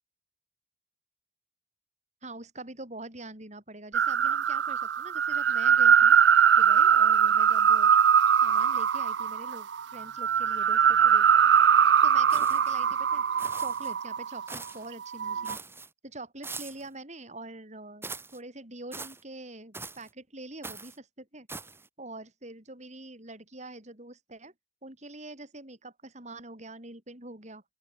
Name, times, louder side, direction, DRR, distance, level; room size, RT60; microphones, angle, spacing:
voice 1, 2.2-6.2 6.6-7.9 8.4-11.3 12.0-13.2 13.6-15.6 16.0-21.5 22.0-24.5 24.8-27.6, right 2 dB, 40° right, 6.0 m, -45 dB
sound 1, 3.9-14.5 15.0-15.6, right 8 dB, 75° right, 0.5 m, -22 dB
sound 2, 12.3-12.8 13.4-13.9 14.5-14.9 15.4-15.9 16.4-16.9 18.0-18.4 18.9-19.2 19.7-20.1 20.6-21.0 21.5-21.9, right 3 dB, 15° right, 5.1 m, -42 dB
open air
head